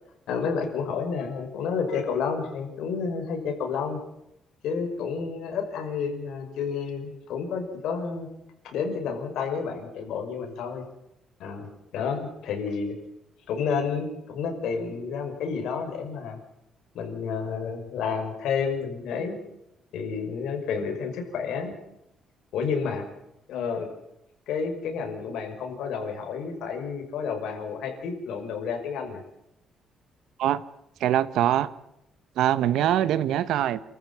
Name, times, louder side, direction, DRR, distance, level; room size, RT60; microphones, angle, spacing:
voice 1, 0.3-4.0 4.6-8.3 8.6-10.8 11.4-13.0 13.5-16.4 16.9-19.4 19.9-21.7 22.5-23.0 23.5-23.9 24.5-29.2, left 5 dB, 80° left, 4 dB, 5.8 m, -30 dB
voice 2, 31.0-31.7 32.4-33.8, right 11 dB, 85° right, 15 dB, 1.2 m, -23 dB
29.5 x 14.0 x 7.5 m, 0.84 s
cardioid pair, 170°, 0 cm